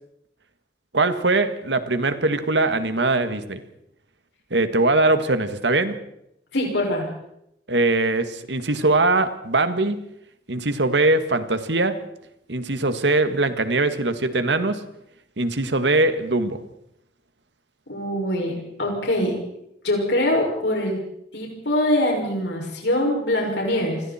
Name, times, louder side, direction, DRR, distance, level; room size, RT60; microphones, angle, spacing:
voice 1, 0.9-3.6 4.5-5.9 7.7-10.0 10.5-12.0 12.5-14.8 15.4-16.6, right 2 dB, 90° right, 10 dB, 1.8 m, -21 dB
voice 2, 6.5-7.1 17.9-18.5 18.8-19.3 19.8-21.0 21.3-24.0, left 1 dB, 85° left, -1 dB, 6.2 m, -23 dB
28.5 x 21.0 x 4.4 m, 0.79 s
head